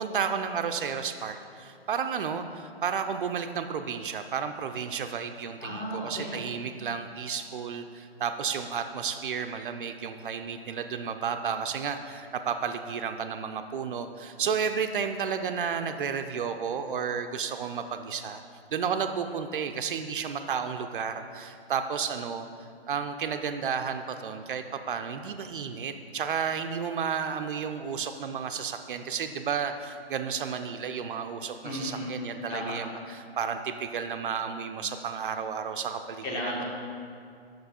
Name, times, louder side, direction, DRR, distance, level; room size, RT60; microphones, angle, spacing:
voice 1, 0.0-18.4 18.7-22.5 22.9-36.6, right 6 dB, 55° right, 7 dB, 0.5 m, -32 dB
voice 2, 5.6-6.4 31.6-32.1 32.5-32.8 36.2-36.6, left 1 dB, 30° left, -2 dB, 1.4 m, -34 dB
7.0 x 6.2 x 4.2 m, 2.3 s
figure-of-eight pair, 125°, 32 cm